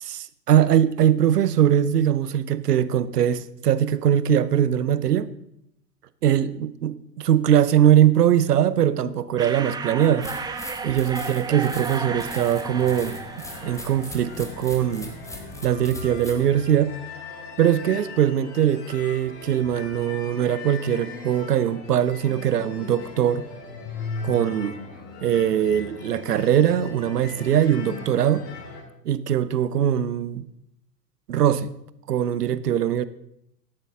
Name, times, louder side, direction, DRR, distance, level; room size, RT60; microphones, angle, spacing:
voice 1, 0.0-5.3 6.2-13.2 13.6-15.1 15.6-17.0 17.6-23.4 24.2-24.8 25.2-28.4 29.0-30.5 31.3-31.7 32.1-33.1, right 10 dB, 75° right, 0.7 m, -21 dB
sound 1, 9.4-14.9, right 4 dB, 10° right, 0.6 m, -34 dB
sound 2, 10.2-16.4, left 1 dB, 5° left, 1.6 m, -41 dB
sound 3, 11.9-28.8, left 4 dB, 55° left, 3.8 m, -39 dB
13.0 x 11.0 x 3.7 m
figure-of-eight pair, 90°, 47 cm